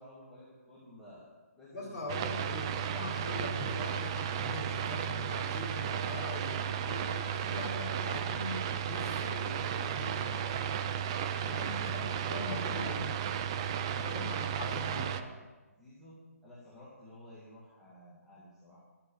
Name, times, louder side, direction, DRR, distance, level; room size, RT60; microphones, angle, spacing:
voice 1, 0.0-2.3 11.4-12.9 13.7-15.5 15.8-16.2 16.4-18.8, left 1 dB, 5° left, -11 dB, 2.2 m, -52 dB
voice 2, 1.7-10.6 11.4-12.0 12.3-13.0 14.0-15.1, left 2 dB, 25° left, -4 dB, 4.0 m, -42 dB
sound 1, 2.1-15.2, right 8 dB, 20° right, 0.4 m, -34 dB
12.0 x 7.7 x 8.6 m, 1.2 s
hypercardioid pair, 170°, 8 cm